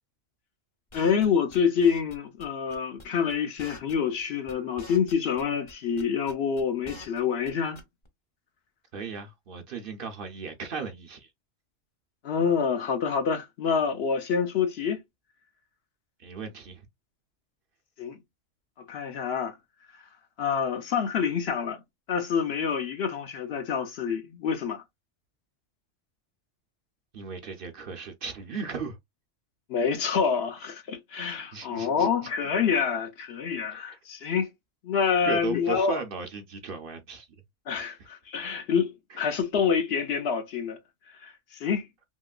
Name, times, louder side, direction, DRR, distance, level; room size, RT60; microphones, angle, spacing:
voice 1, 0.9-7.8 12.2-15.0 18.0-18.2 18.9-19.6 20.4-21.8 22.1-24.8 29.7-34.5 34.8-36.0 37.7-40.8 41.1-41.9, left 6 dB, 65° left, 0.8 m, -27 dB
sound 1, 0.9-2.1 2.4-2.5 2.7-3.3 3.6-4.2 4.5-5.4 5.7-7.2 7.4-7.5 7.8-8.1, left 1 dB, 30° left, 0.6 m, -46 dB
voice 2, 8.9-11.3 16.2-16.8 27.1-29.0 31.3-32.3 33.7-34.0 35.3-37.3 39.1-39.2, right 5 dB, 55° right, 0.7 m, -37 dB
2.9 x 2.9 x 2.3 m
omnidirectional pair, 1.2 m